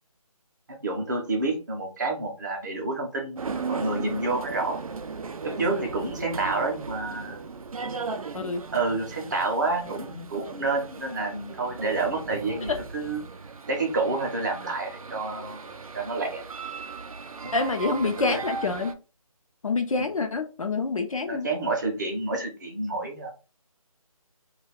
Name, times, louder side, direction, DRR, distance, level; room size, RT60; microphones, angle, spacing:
voice 1, 0.7-4.8 5.4-7.4 8.7-13.2 13.7-15.7 15.9-16.4 17.4-18.4 20.0-20.1 21.3-23.3, right 3 dB, 30° right, 1 dB, 0.6 m, -29 dB
sound 1, 3.3-18.9, right 5 dB, 70° right, 0.4 m, -37 dB
voice 2, 17.5-18.9 19.6-21.5, left 3 dB, 65° left, 6 dB, 0.5 m, -27 dB
2.3 x 2.2 x 3.2 m, 0.33 s
figure-of-eight pair, 155°, 19 cm